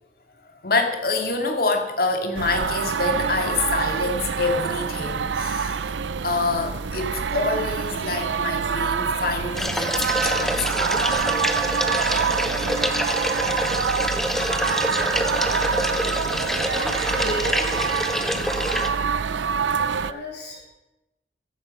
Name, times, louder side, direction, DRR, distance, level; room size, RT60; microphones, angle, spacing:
voice 1, 0.6-5.8 6.2-11.3, left 3 dB, 55° left, 5 dB, 2.4 m, -26 dB
sound 1, 2.3-20.1, right 6 dB, 90° right, 0.5 m, -26 dB
sound 2, 9.5-18.9, equal, ahead, 1.0 m, -26 dB
voice 2, 16.1-20.7, left 1 dB, 75° left, -3 dB, 6.6 m, -37 dB
15.0 x 11.0 x 5.5 m, 0.92 s
head